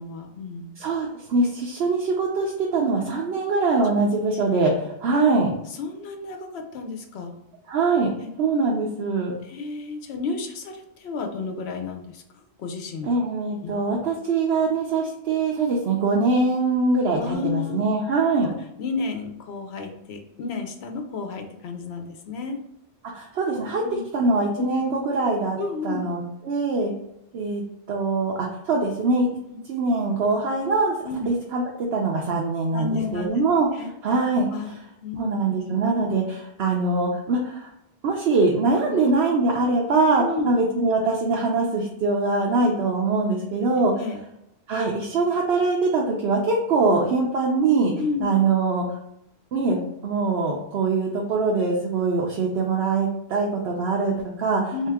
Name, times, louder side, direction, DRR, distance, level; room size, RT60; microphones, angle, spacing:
voice 1, 0.0-0.7 3.8-3.9 5.7-7.3 8.2-8.3 9.4-12.2 12.6-13.1 13.6-13.7 17.2-17.8 18.4-18.5 18.8-22.6 23.8-24.0 24.6-24.7 25.6-26.1 29.5-29.6 31.0-31.3 32.7-33.3 33.7-33.9 34.5-34.8 35.0-35.3 35.6-35.7 38.8-39.0 40.2-40.5 44.0-44.2 47.9-48.3 54.7-54.9, left 4 dB, 80° left, 4 dB, 0.9 m, -31 dB
voice 2, 0.8-5.5 7.7-8.1 8.4-9.3 13.1-18.5 23.1-23.8 24.1-25.6 25.8-26.9 27.3-27.6 27.9-29.3 29.7-30.9 31.3-33.7 34.0-34.7 35.2-37.7 38.0-43.9 44.7-47.9 48.2-48.8 49.5-54.9, right 3 dB, 75° right, -1 dB, 0.9 m, -23 dB
3.6 x 2.8 x 3.4 m, 0.82 s
omnidirectional pair, 1.1 m